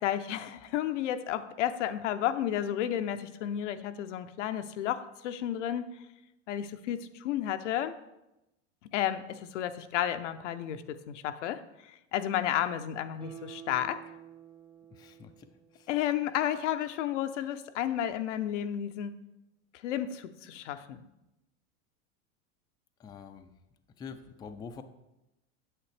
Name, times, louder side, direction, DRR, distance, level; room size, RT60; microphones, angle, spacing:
voice 1, 0.0-5.9 6.5-7.9 8.9-11.6 12.1-14.0 15.9-19.2 19.8-21.0, left 11 dB, 80° left, 10 dB, 0.6 m, -32 dB
Guitar, 13.2-16.5 16.8-16.9, right 10 dB, 15° right, 0.9 m, -50 dB
voice 2, 14.9-15.9 23.0-23.5 24.0-24.8, left 6 dB, 10° left, 7 dB, 0.3 m, -46 dB
8.9 x 7.6 x 3.2 m, 0.92 s
hypercardioid pair, 110°, 36 cm